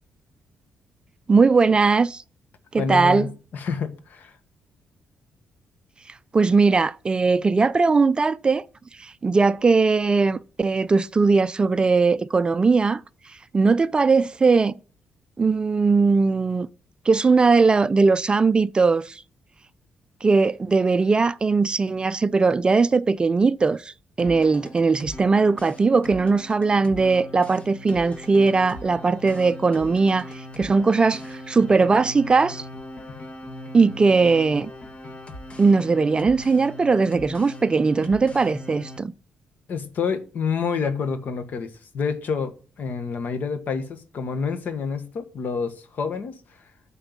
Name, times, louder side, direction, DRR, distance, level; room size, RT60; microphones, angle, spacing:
voice 1, 1.3-2.2 2.7-3.3 6.3-8.6 9.0-13.0 13.5-14.8 15.4-16.7 17.1-19.2 20.2-32.7 33.7-34.7 35.6-39.1, right 4 dB, 30° right, 0.4 m, -19 dB
voice 2, 2.8-4.3 33.1-33.2 39.7-46.4, left 5 dB, 60° left, 1.4 m, -28 dB
sound 1, 24.2-39.0, left 1 dB, 35° left, 1.5 m, -40 dB
9.1 x 4.4 x 7.2 m
cardioid pair, 100°, 3 cm